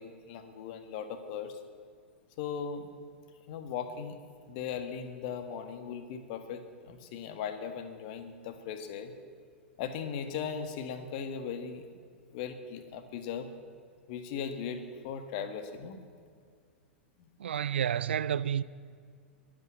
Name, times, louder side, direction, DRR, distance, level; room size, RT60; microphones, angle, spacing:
voice 1, 0.0-1.6 2.4-2.9 3.5-4.2 4.5-9.1 9.8-11.8 12.3-13.5 14.1-16.0, left 7 dB, 45° left, 1.6 m, -38 dB
voice 2, 17.4-18.6, right 9 dB, 60° right, 0.4 m, -30 dB
22.0 x 9.1 x 7.3 m
figure-of-eight pair, 100°, 7 cm